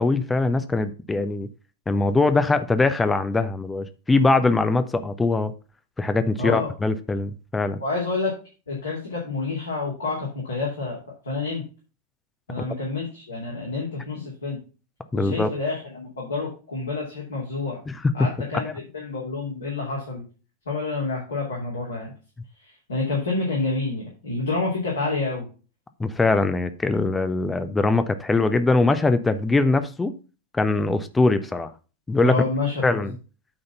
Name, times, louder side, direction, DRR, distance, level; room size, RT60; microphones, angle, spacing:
voice 1, 0.0-1.5 1.9-5.5 6.0-7.8 15.1-15.5 17.9-18.3 18.5-18.7 26.0-30.1 30.5-31.7 32.1-32.4 32.8-33.2, left 3 dB, 10° left, 0.7 m, -22 dB
voice 2, 6.4-6.7 7.8-8.3 8.7-11.0 11.2-11.6 12.5-14.6 15.1-17.8 18.1-20.2 20.7-22.1 22.6-25.5 32.2-33.0, left 3 dB, 70° left, 2.8 m, -28 dB
8.9 x 4.0 x 5.7 m
figure-of-eight pair, 90°, 0 cm